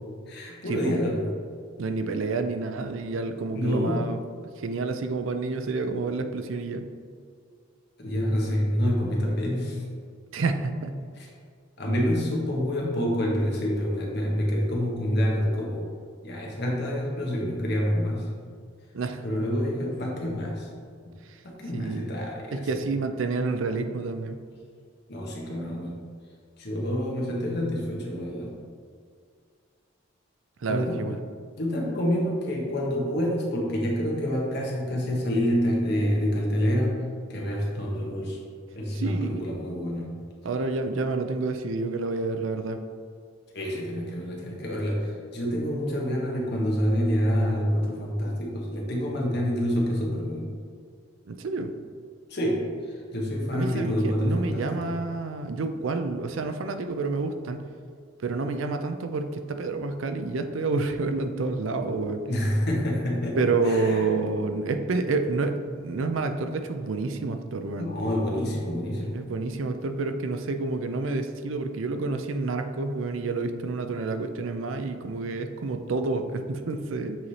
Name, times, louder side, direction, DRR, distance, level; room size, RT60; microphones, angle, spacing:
voice 1, 0.3-1.2 3.5-4.0 8.0-9.8 11.2-11.3 11.8-15.9 16.2-18.3 19.2-20.7 21.0-21.1 21.4-22.7 25.1-25.9 26.6-28.5 30.7-31.0 31.6-37.0 37.3-38.4 38.7-40.1 43.5-50.5 52.3-55.0 62.3-64.1 67.8-69.2, equal, 55° left, -2 dB, 1.3 m, -27 dB
voice 2, 1.8-4.2 4.6-6.9 10.3-10.9 18.9-19.2 21.7-22.1 22.5-24.4 30.6-31.2 39.0-39.4 40.4-42.8 51.3-51.7 53.5-57.6 58.2-62.2 63.4-67.9 69.1-77.2, right 3 dB, 70° right, 7 dB, 0.5 m, -29 dB
7.4 x 3.2 x 4.2 m, 2.1 s
head